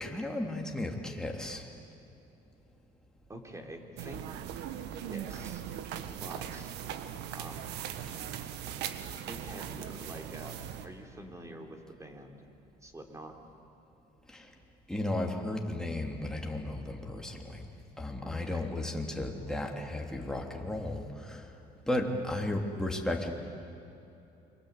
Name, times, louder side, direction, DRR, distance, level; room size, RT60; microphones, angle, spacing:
voice 1, 0.0-1.7 14.3-14.5 14.9-17.6 18.0-21.5 21.9-23.3, left 1 dB, 5° left, 1 dB, 3.2 m, -34 dB
voice 2, 3.3-4.4 5.1-5.6 6.2-6.7 7.3-7.7 9.3-12.5 12.8-13.4 18.2-18.7, right 1 dB, 15° right, 4 dB, 3.5 m, -46 dB
sound 1, 4.0-10.9, right 9 dB, 85° right, 1.6 m, -39 dB
29.0 x 24.0 x 8.4 m, 2.9 s
cardioid pair, 110°, 17 cm